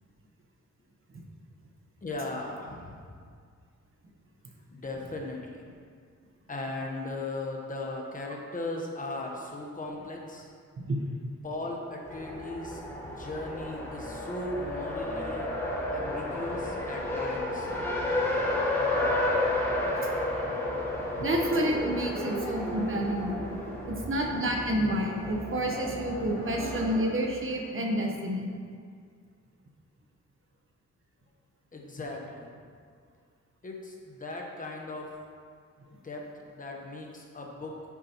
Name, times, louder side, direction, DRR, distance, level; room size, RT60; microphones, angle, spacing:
voice 1, 2.0-3.2 4.7-5.6 6.5-10.5 11.4-15.5 15.9-17.7 31.7-32.5 33.6-35.1 35.9-37.7, left 2 dB, 25° left, 0 dB, 1.1 m, -38 dB
Race car auto racing, 12.0-27.0, left 1 dB, 10° left, 1.2 m, -32 dB
voice 2, 21.2-23.6 23.9-28.5, right 1 dB, 45° right, 1 dB, 1.1 m, -29 dB
9.8 x 8.3 x 3.0 m, 2.1 s
wide cardioid pair, 170°, 30 cm